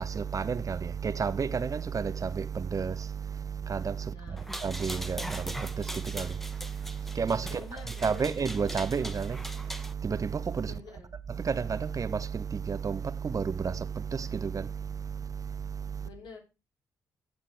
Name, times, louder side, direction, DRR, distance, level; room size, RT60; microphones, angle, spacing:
voice 1, 0.0-10.8 11.3-16.1, right 6 dB, 45° right, 0.9 m, -32 dB
voice 2, 4.0-4.6 7.5-8.3 10.6-11.1 16.0-16.4, left 5 dB, 70° left, 4.1 m, -48 dB
sound 1, 4.4-9.9, equal, 5° left, 1.3 m, -41 dB
15.5 x 7.4 x 3.4 m
hypercardioid pair, 40°, 8 cm